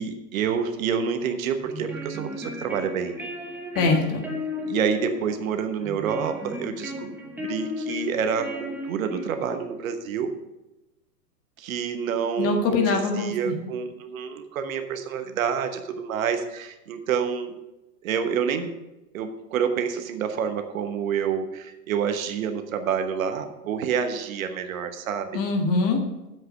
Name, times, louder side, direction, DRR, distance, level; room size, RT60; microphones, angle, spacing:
voice 1, 0.0-3.2 4.6-7.1 7.4-10.3 11.6-17.5 18.0-18.8 19.1-25.4, right 7 dB, 55° right, 7 dB, 1.2 m, -28 dB
sound 1, 1.6-9.7, left 2 dB, 5° right, 1.1 m, -35 dB
voice 2, 3.7-4.2 12.4-13.5 25.3-26.0, left 3 dB, 30° left, 4 dB, 1.5 m, -23 dB
7.8 x 7.8 x 5.5 m, 0.99 s
hypercardioid pair, 110°, 48 cm